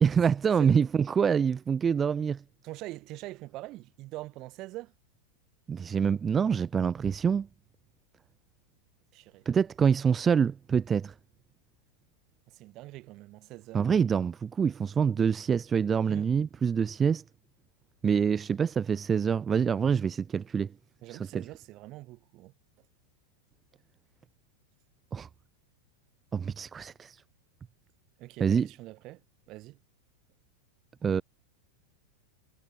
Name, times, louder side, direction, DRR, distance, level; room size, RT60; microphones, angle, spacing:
voice 1, 0.0-2.4 5.7-7.5 9.4-11.1 13.7-17.2 18.0-20.7 21.1-21.4 25.1-25.3 26.3-27.2 28.4-28.7 31.0-31.2, right 7 dB, 20° right, 1.0 m, -26 dB
voice 2, 2.6-4.9 9.1-9.5 12.5-13.8 16.1-16.3 21.0-22.5 28.2-29.2 29.5-29.8, right 19 dB, 40° right, 6.3 m, -44 dB
figure-of-eight pair, 90°, 0 cm